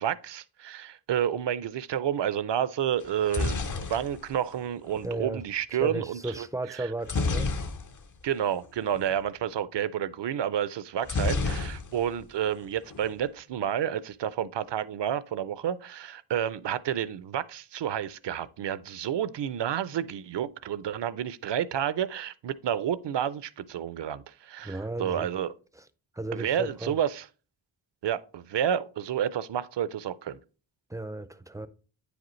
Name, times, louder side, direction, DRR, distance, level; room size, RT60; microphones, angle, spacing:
voice 1, 0.0-6.9 8.2-25.5 26.3-27.3 28.0-30.4, right 9 dB, 60° right, 0.5 m, -30 dB
sound 1, 3.0-5.1 7.0-8.2 8.5-8.6 8.9-9.1 11.0-12.2 12.5-13.1, left 3 dB, 40° left, 0.6 m, -30 dB
voice 2, 5.0-5.4 5.7-7.6 24.6-25.3 25.8-25.9 26.1-27.0 30.9-31.7, right 2 dB, 10° right, 0.4 m, -34 dB
9.3 x 5.0 x 3.1 m
wide cardioid pair, 115°, 48 cm